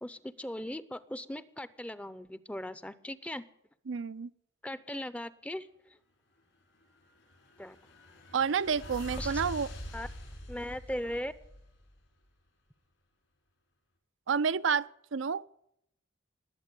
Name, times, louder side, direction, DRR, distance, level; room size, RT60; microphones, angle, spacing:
voice 1, 0.0-3.4 4.6-5.7 7.6-7.8 9.2-9.3 9.9-10.1 10.5-11.3, left 1 dB, 5° left, 0.6 m, -38 dB
voice 2, 3.9-4.3 8.3-9.7 14.3-15.5, right 6 dB, 80° right, 0.5 m, -30 dB
sound 1, 7.1-12.1, left 1 dB, 75° left, 5.6 m, -44 dB
20.5 x 8.2 x 8.3 m
head